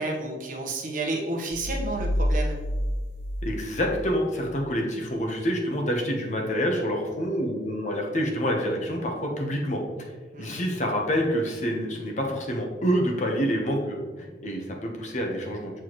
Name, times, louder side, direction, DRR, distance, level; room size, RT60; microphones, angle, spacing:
voice 1, 0.0-2.6 10.3-10.6, right 2 dB, 50° right, 0 dB, 1.1 m, -31 dB
sound 1, 1.5-4.1, equal, 70° right, 0.6 m, -28 dB
voice 2, 3.4-9.8 10.4-15.7, equal, 45° left, 1 dB, 1.0 m, -27 dB
7.9 x 4.5 x 3.0 m, 1.3 s
head